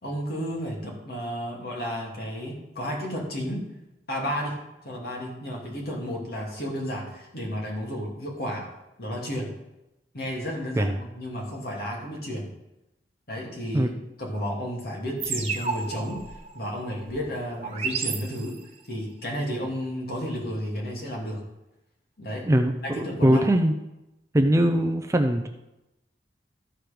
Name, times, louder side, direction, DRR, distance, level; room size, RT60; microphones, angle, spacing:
voice 1, 0.0-3.6 4.1-4.6 4.8-8.7 9.0-9.5 10.1-12.5 13.3-13.9 14.2-16.2 16.5-18.6 18.9-21.4 22.2-22.5 22.8-23.5, equal, 60° left, -1 dB, 2.4 m, -32 dB
sound 1, 15.2-18.9, right 5 dB, 35° right, 1.2 m, -33 dB
voice 2, 22.5-23.7 24.3-25.5, right 1 dB, 15° right, 5 dB, 0.5 m, -21 dB
13.5 x 4.6 x 5.1 m, 0.94 s
head